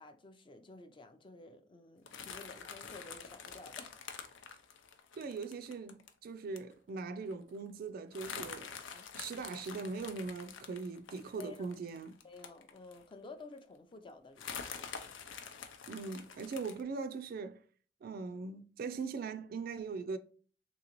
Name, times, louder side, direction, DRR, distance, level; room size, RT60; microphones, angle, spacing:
voice 1, 0.0-4.0 4.5-4.6 8.9-9.1 11.4-11.7 12.2-15.1, left 3 dB, 25° left, 0.4 m, -53 dB
sound 1, 2.1-6.1 6.6-6.7 7.0-7.1 7.3-7.6 8.1-13.1 13.6-13.7 14.4-16.8, left 6 dB, 85° left, 0.5 m, -47 dB
voice 2, 5.2-8.7 9.1-12.2 15.9-17.6 18.0-20.2, right 4 dB, 50° right, 0.3 m, -40 dB
3.8 x 3.2 x 2.9 m
head